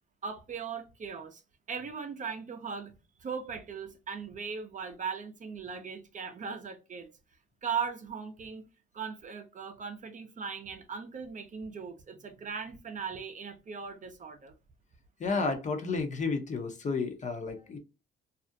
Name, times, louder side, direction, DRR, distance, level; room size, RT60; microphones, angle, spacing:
voice 1, 0.2-1.4 1.7-2.9 3.2-7.1 7.6-8.7 8.9-14.5, right 6 dB, 40° right, 0.5 m, -38 dB
voice 2, 15.2-17.8, left 4 dB, 40° left, 0.6 m, -31 dB
2.4 x 2.0 x 2.6 m
cardioid pair, 90°, 20 cm